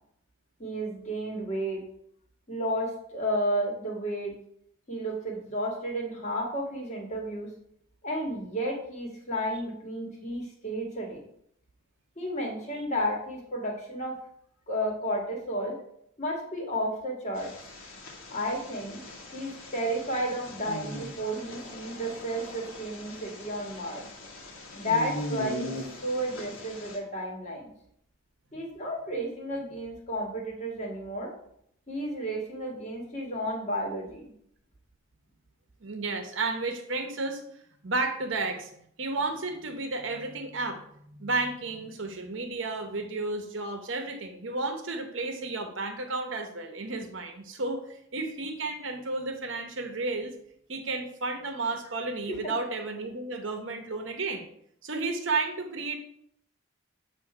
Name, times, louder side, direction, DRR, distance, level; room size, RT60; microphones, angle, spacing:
voice 1, 0.6-1.8 2.5-4.3 4.9-7.5 8.0-11.2 12.2-14.2 14.7-15.8 16.2-17.5 18.3-19.0 19.3-24.0 24.7-27.7 28.5-31.3 31.9-34.3 52.3-52.5, equal, 35° left, 0 dB, 1.4 m, -32 dB
sound 1, 17.4-27.0, left 1 dB, 90° left, 1.2 m, -41 dB
voice 2, 35.8-37.4 37.8-38.7 39.0-50.3 50.7-54.5 54.8-56.0, right 3 dB, 65° right, 6 dB, 0.8 m, -32 dB
7.5 x 2.6 x 4.8 m, 0.70 s
head